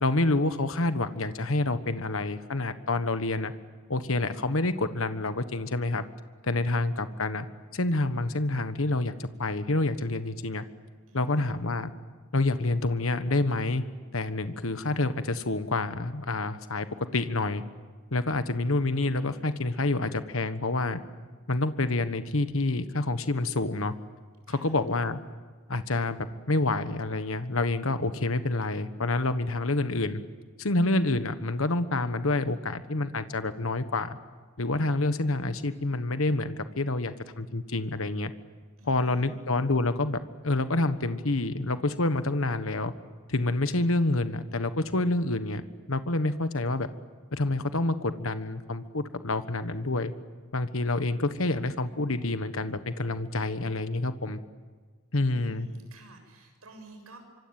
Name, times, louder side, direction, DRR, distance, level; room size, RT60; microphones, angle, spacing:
voice 1, 0.0-3.5 3.9-6.0 6.4-7.5 7.7-10.6 11.1-11.9 12.3-13.8 14.1-17.6 18.1-21.0 21.5-23.9 24.5-25.2 25.7-30.2 30.6-34.2 34.6-38.3 38.9-42.9 43.3-45.6 45.9-46.9 47.3-50.1 50.5-54.4 55.1-55.7, left 2 dB, 65° left, 10 dB, 1.4 m, -28 dB
voice 2, 11.1-11.5 24.5-24.8 38.8-39.4 55.2-57.2, right 3 dB, 85° right, 5 dB, 7.4 m, -52 dB
26.0 x 25.0 x 9.0 m, 1.5 s
head